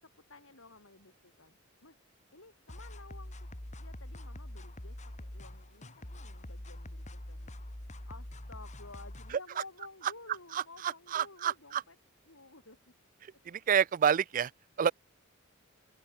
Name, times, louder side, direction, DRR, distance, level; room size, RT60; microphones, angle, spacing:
voice 1, 0.0-2.0 2.3-7.5 7.9-12.0 12.2-13.0, left 3 dB, 75° left, 7.7 m, -54 dB
sound 1, 2.7-9.3, left 1 dB, 35° left, 2.2 m, -45 dB
voice 2, 11.1-11.8 13.5-14.5 14.8-14.9, right 8 dB, 40° right, 0.4 m, -27 dB
open air
head